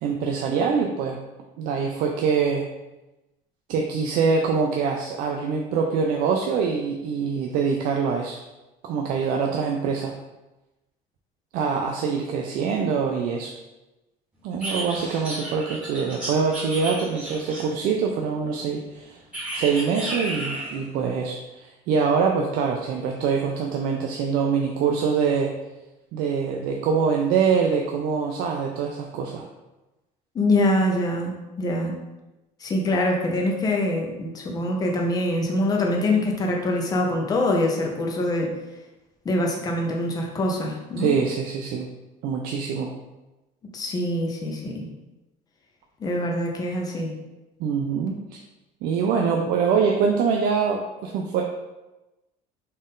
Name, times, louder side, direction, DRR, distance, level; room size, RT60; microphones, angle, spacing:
voice 1, 0.0-1.2 1.6-2.7 3.7-8.4 8.8-10.1 11.5-13.5 14.4-19.2 19.5-25.5 26.1-29.4 41.0-41.9 42.2-42.9 47.6-48.2 48.8-51.4, right 5 dB, 65° right, 1 dB, 0.4 m, -24 dB
sound 1, 14.6-17.9 19.3-20.8, right 1 dB, 10° right, 1.2 m, -32 dB
voice 2, 30.3-31.3 31.6-31.9 32.6-38.5 39.2-41.1 43.7-44.9 46.0-47.1, left 1 dB, 25° left, 0 dB, 0.6 m, -24 dB
4.1 x 2.5 x 3.6 m, 1.0 s
cardioid pair, 165°, 16 cm